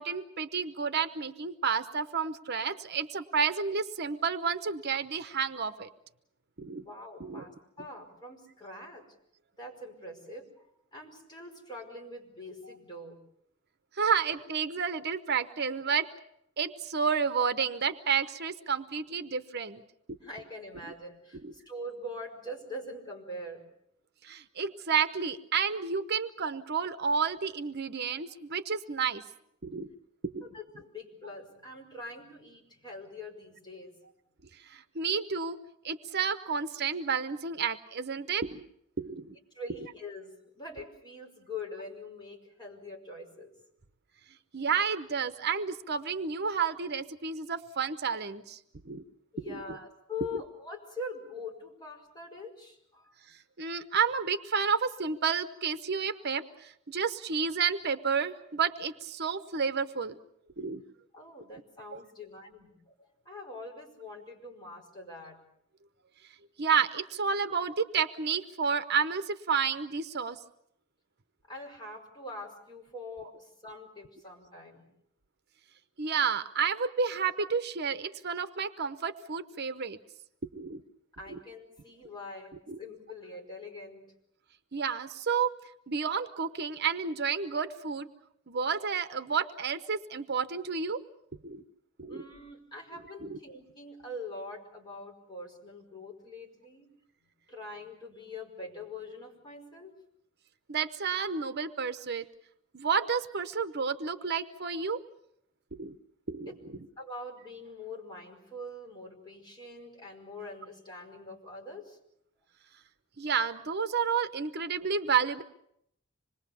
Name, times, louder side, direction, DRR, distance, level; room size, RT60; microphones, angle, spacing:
voice 1, 0.0-5.9 6.6-6.8 7.2-7.4 14.0-16.1 16.6-19.8 21.4-21.5 24.2-29.2 29.6-29.9 30.2-30.4 34.6-35.6 35.8-38.6 39.0-39.3 44.5-48.6 48.8-49.0 49.5-49.8 53.6-60.2 60.6-60.8 61.9-62.0 66.6-70.4 76.0-80.0 80.5-80.8 81.3-81.4 82.7-82.8 84.7-85.5 85.9-88.1 88.5-91.0 91.4-91.6 92.0-92.2 93.2-93.4 100.7-102.3 102.7-105.0 105.8-105.9 106.3-106.5 113.2-115.4, right 6 dB, 55° right, 11 dB, 0.9 m, -30 dB
voice 2, 6.8-7.5 7.8-9.0 9.6-13.2 20.2-23.6 30.4-33.9 39.5-43.5 49.3-53.1 61.1-65.4 71.5-74.9 81.1-84.0 92.1-96.9 97.5-100.0 106.5-106.6 107.0-112.0, left 2 dB, 20° left, 0 dB, 5.2 m, -44 dB
26.0 x 21.5 x 7.0 m, 0.75 s
head